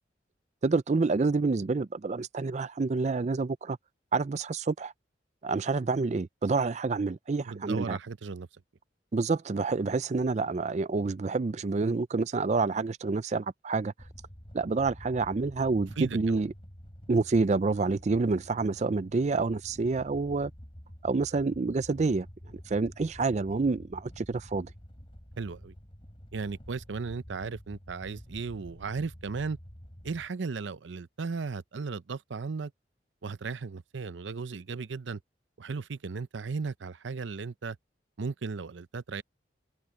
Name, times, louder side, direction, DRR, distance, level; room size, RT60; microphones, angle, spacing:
voice 1, 0.6-3.8 4.1-4.9 5.4-8.0 9.1-13.9 14.5-16.5 17.1-20.5 21.0-22.3 22.7-24.7, right 3 dB, 40° right, 0.4 m, -28 dB
voice 2, 7.5-8.5 16.0-16.4 25.4-25.7 26.3-29.6 30.0-32.7 33.2-35.2 35.6-37.8 38.2-39.2, right 4 dB, 85° right, 0.6 m, -36 dB
sound 1, 14.0-30.3, equal, 30° left, 4.5 m, -49 dB
open air
head